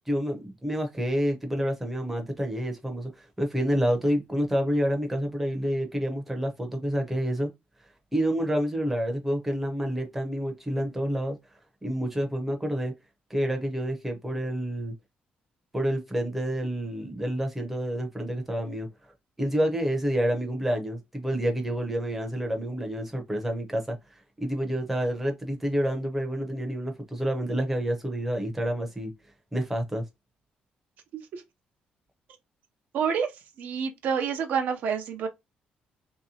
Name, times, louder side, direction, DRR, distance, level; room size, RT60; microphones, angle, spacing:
voice 1, 0.1-7.5 8.1-11.4 11.8-12.9 13.3-14.9 15.7-18.9 19.4-24.0 24.4-29.1 29.5-30.0, equal, 5° right, 0.6 m, -28 dB
voice 2, 32.9-33.3 33.6-35.3, right 7 dB, 65° right, 0.5 m, -28 dB
3.1 x 2.8 x 2.7 m
cardioid pair, 170°, 3 cm